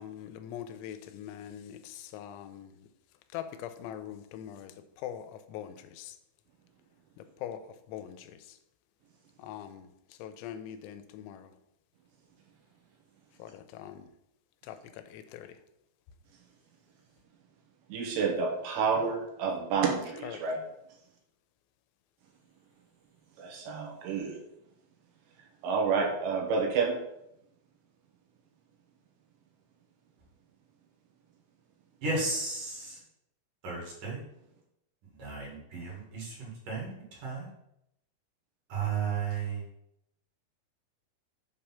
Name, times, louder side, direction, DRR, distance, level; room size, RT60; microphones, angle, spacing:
voice 1, 0.0-2.7 3.3-4.7 5.0-6.1 7.4-7.6 7.9-8.3 9.4-9.9 10.2-11.5 13.4-14.0 14.7-14.8 15.1-15.5 20.2-20.3, left 10 dB, 90° left, 10 dB, 3.0 m, -42 dB
voice 2, 17.9-20.6 23.4-24.4 25.6-27.0, right 5 dB, 75° right, 0 dB, 3.2 m, -29 dB
voice 3, 32.0-33.0 33.6-34.2 35.0-37.5 38.7-39.6, right 4 dB, 55° right, -3 dB, 2.7 m, -34 dB
7.6 x 3.3 x 5.6 m, 0.81 s
omnidirectional pair, 5.2 m